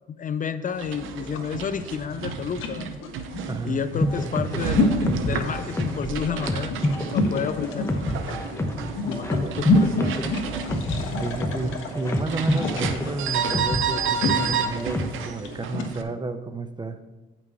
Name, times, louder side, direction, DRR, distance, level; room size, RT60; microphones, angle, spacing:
voice 1, 0.1-2.9 3.6-6.7 7.1-8.2 8.5-8.7 9.0-10.2, left 7 dB, 40° left, 12 dB, 0.5 m, -30 dB
sound 1, 0.7-16.0, right 7 dB, 85° right, 0.8 m, -32 dB
sound 2, 1.2-16.0, left 2 dB, 85° left, 1.2 m, -29 dB
voice 2, 3.5-3.8 9.3-9.5 11.2-17.0, right 3 dB, 20° right, 10 dB, 0.7 m, -31 dB
sound 3, 4.0-15.3, left 1 dB, 15° left, 0.9 m, -29 dB
9.2 x 6.0 x 4.5 m, 1.1 s
cardioid pair, 90°, 20 cm